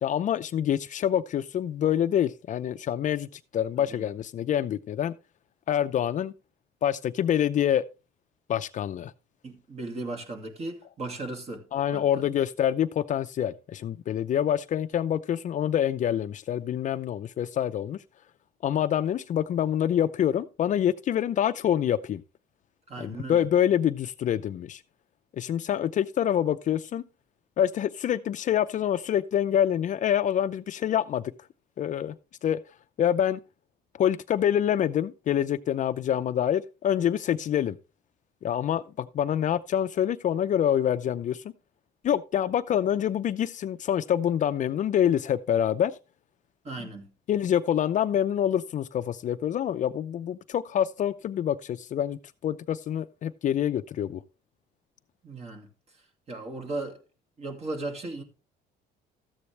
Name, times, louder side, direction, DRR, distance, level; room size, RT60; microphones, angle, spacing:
voice 1, 0.0-3.3 3.5-5.1 5.7-6.3 6.8-7.8 8.5-9.1 11.7-18.0 18.6-22.2 23.0-24.8 25.3-27.0 27.6-31.2 31.8-32.1 32.4-32.6 33.0-33.4 34.0-37.8 38.4-41.4 42.0-45.9 47.3-54.2, left 10 dB, 45° left, 0.5 m, -26 dB
voice 2, 9.4-11.6 11.9-12.2 22.9-23.4 46.6-47.1 55.2-55.7 56.3-57.0 57.4-58.2, right 2 dB, 40° right, 2.5 m, -36 dB
13.5 x 8.3 x 3.3 m
cardioid pair, 110°, 17 cm